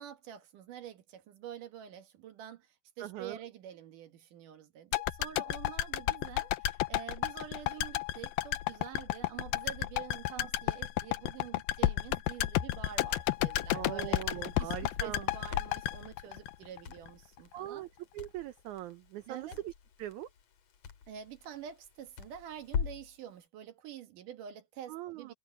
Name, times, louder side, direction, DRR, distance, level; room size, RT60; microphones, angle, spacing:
voice 1, 0.0-14.3 14.6-17.8 19.3-19.6 21.1-25.3, right 9 dB, 65° right, 2.8 m, -47 dB
voice 2, 3.0-3.4 10.3-10.5 13.7-15.3 17.5-19.7 20.0-20.3 24.9-25.3, right 14 dB, 90° right, 1.7 m, -41 dB
sound 1, 4.9-17.1 17.4-17.5, left 15 dB, 75° left, 2.5 m, -32 dB
Crackle, 12.9-23.2, left 6 dB, 50° left, 3.0 m, -43 dB
omnidirectional pair, 4.4 m